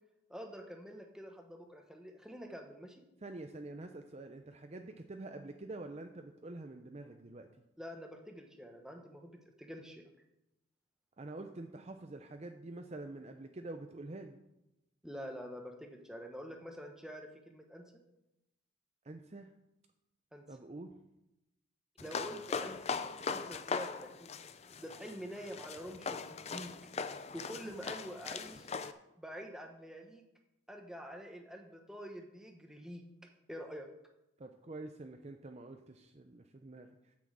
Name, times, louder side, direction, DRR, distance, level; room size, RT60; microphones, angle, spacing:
voice 1, 0.3-3.0 7.8-10.0 15.0-17.8 20.3-20.4 22.0-23.0 23.3-26.7 27.0-28.7 29.2-30.2 30.7-33.0 33.5-33.9, equal, 5° right, 2 dB, 1.0 m, -47 dB
voice 2, 3.2-7.5 11.2-14.4 19.0-19.5 20.5-20.9 34.4-37.0, right 2 dB, 30° right, 6 dB, 0.5 m, -46 dB
sound 1, 22.0-28.9, left 5 dB, 30° left, 0.4 m, -40 dB
8.3 x 6.2 x 7.5 m, 0.90 s
head